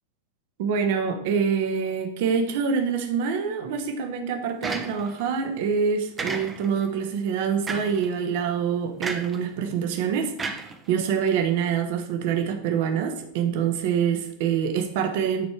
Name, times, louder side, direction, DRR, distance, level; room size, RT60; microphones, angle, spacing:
voice 1, 0.6-10.6 10.9-15.5, right 7 dB, 50° right, 6 dB, 1.1 m, -25 dB
sound 1, 4.6-5.3 6.2-6.8 7.7-8.1 9.0-9.4 10.4-11.3, right 4 dB, 15° right, 0.9 m, -32 dB
9.4 x 4.2 x 4.9 m, 0.72 s
figure-of-eight pair, 90°, 0 cm